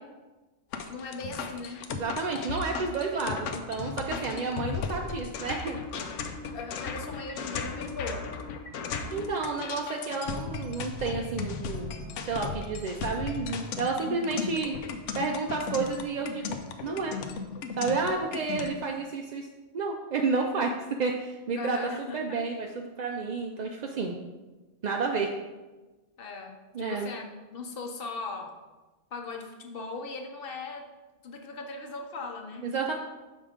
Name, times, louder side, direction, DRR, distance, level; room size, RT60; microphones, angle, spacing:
sound 1, 0.7-18.7, left 5 dB, 85° left, 0.9 m, -36 dB
voice 1, 0.9-1.9 4.6-4.8 6.5-8.3 14.0-14.4 21.6-22.4 26.2-27.3 27.5-28.6 29.1-30.9 31.2-32.7, left 4 dB, 55° left, 3 dB, 0.8 m, -38 dB
voice 2, 1.9-5.8 9.1-11.9 12.2-14.8 15.1-17.2 17.8-19.5 19.7-20.7 21.0-24.2 24.8-25.3 26.7-27.1 32.6-32.9, right 4 dB, 60° right, 1 dB, 0.4 m, -31 dB
6.2 x 3.7 x 5.0 m, 1.2 s
omnidirectional pair, 1.2 m